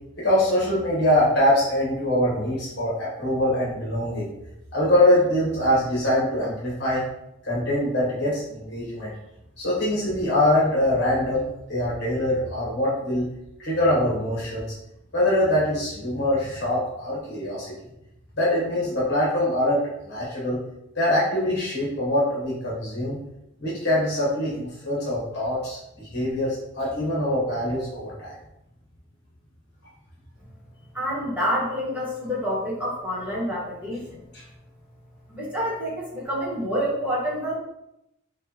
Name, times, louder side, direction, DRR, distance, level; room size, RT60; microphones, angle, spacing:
voice 1, 0.2-4.3 4.7-7.0 7.4-9.1 9.6-13.3 13.6-14.6 15.1-17.9 18.4-20.6 20.9-23.2 23.6-28.3 34.3-34.4, left 1 dB, 50° left, -6 dB, 1.5 m, -23 dB
voice 2, 30.9-34.0 35.3-37.6, equal, 5° right, -6 dB, 1.4 m, -27 dB
6.4 x 2.4 x 2.9 m, 0.85 s
head